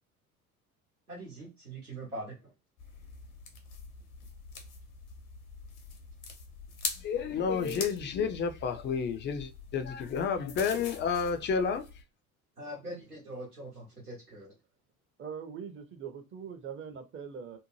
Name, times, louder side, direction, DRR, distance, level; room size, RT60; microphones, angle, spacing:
voice 1, 1.1-2.5 12.6-14.5, right 1 dB, 90° right, 1.0 m, -42 dB
sound 1, 2.8-12.0, left 4 dB, 70° left, 0.9 m, -44 dB
voice 2, 7.0-11.9, left 6 dB, 25° left, 0.4 m, -30 dB
voice 3, 15.2-17.6, right 7 dB, 25° right, 0.6 m, -42 dB
2.7 x 2.1 x 3.0 m
figure-of-eight pair, 60°, 43 cm